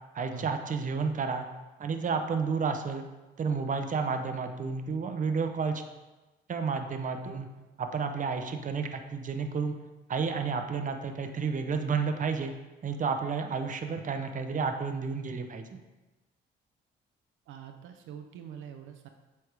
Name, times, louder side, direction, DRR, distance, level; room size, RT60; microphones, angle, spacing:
voice 1, 0.1-1.5 1.8-3.0 3.4-5.8 6.5-7.5 7.8-9.7 10.1-12.5 12.8-15.8, right 5 dB, 40° right, 6 dB, 0.7 m, -31 dB
voice 2, 17.5-19.1, right 8 dB, 85° right, 5 dB, 0.6 m, -45 dB
7.8 x 3.5 x 4.7 m, 1.1 s
cardioid pair, 90°, 20 cm